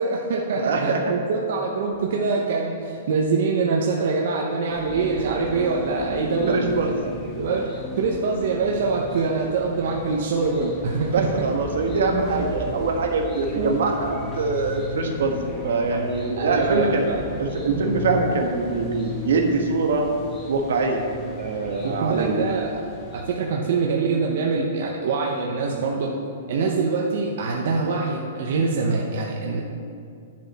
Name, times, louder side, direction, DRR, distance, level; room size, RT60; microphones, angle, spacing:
voice 1, 0.0-6.6 7.3-7.7 8.0-11.3 13.5-13.8 16.4-17.2 17.7-17.8 21.8-22.7 23.1-26.1 26.5-29.6, right 4 dB, 60° right, -1 dB, 0.9 m, -24 dB
voice 2, 0.5-1.1 6.5-6.9 11.1-15.3 15.6-17.1 17.4-20.1 20.5-21.0 21.4-22.5, right 3 dB, 80° right, 2 dB, 1.4 m, -23 dB
sound 1, 4.7-23.2, left 3 dB, 10° left, 1.3 m, -36 dB
10.5 x 7.5 x 4.2 m, 2.4 s
hypercardioid pair, 170°, 0 cm